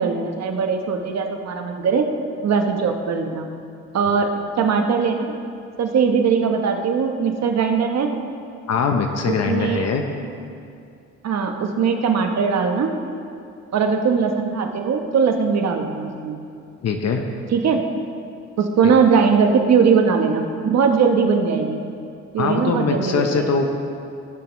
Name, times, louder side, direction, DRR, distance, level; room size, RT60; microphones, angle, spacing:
voice 1, 0.0-2.1 2.4-3.5 3.9-4.3 4.6-5.3 5.8-8.1 9.3-9.9 11.2-12.9 13.7-16.4 17.5-17.8 18.6-21.8 22.3-23.5, right 6 dB, 60° right, 4 dB, 1.1 m, -20 dB
voice 2, 8.7-10.0 16.8-17.3 18.8-18.9 22.4-23.6, left 5 dB, 60° left, 4 dB, 0.8 m, -22 dB
18.0 x 7.1 x 3.1 m, 2.5 s
cardioid pair, 90°, 30 cm